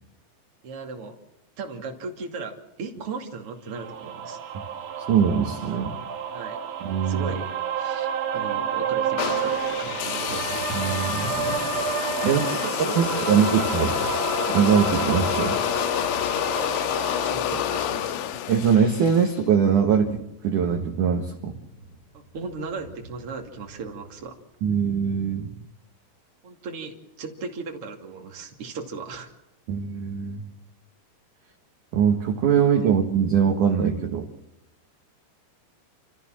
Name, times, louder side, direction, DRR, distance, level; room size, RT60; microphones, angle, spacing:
voice 1, 0.6-1.1 1.6-4.4 6.3-6.6 7.1-7.5 7.8-10.5 12.2-13.9 17.2-18.2 22.1-24.4 26.4-29.3 32.8-32.9, right 4 dB, 40° right, 3 dB, 2.8 m, -36 dB
sound 1, 3.7-17.3, right 7 dB, 75° right, 1.5 m, -30 dB
voice 2, 5.1-5.9 6.8-7.3 10.7-11.3 12.2-12.4 13.0-13.9 14.5-15.6 18.5-21.5 24.6-25.5 29.7-30.4 31.9-34.3, right 7 dB, 60° right, 3 dB, 2.6 m, -22 dB
Thunder, 8.0-9.2 9.5-24.8, equal, 45° left, 4.6 m, -43 dB
sound 2, 9.2-19.4, left 11 dB, 80° left, 3.3 m, -28 dB
29.5 x 14.5 x 7.5 m, 0.94 s
omnidirectional pair, 5.0 m